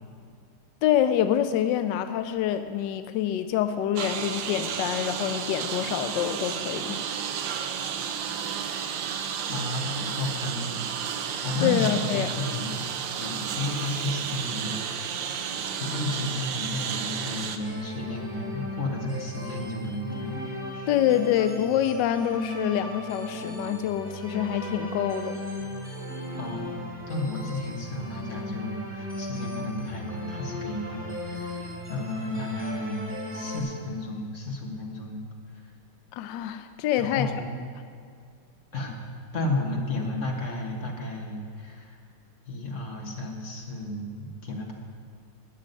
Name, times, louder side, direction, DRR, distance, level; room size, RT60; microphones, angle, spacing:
voice 1, 0.8-7.0 11.6-12.3 20.9-25.4 36.1-37.3, left 10 dB, 75° left, 10 dB, 1.0 m, -26 dB
Engine, 4.0-17.6, right 8 dB, 65° right, 1.4 m, -32 dB
voice 2, 9.5-10.8 11.1-12.8 13.1-15.3 15.8-20.9 26.4-35.7 37.0-37.5 38.7-39.0 39.3-42.0 42.4-44.7, left 2 dB, 35° left, 0 dB, 1.7 m, -33 dB
sound 1, 17.6-33.6, left 1 dB, 5° right, 1.8 m, -36 dB
13.0 x 6.3 x 9.6 m, 2.2 s
omnidirectional pair, 2.4 m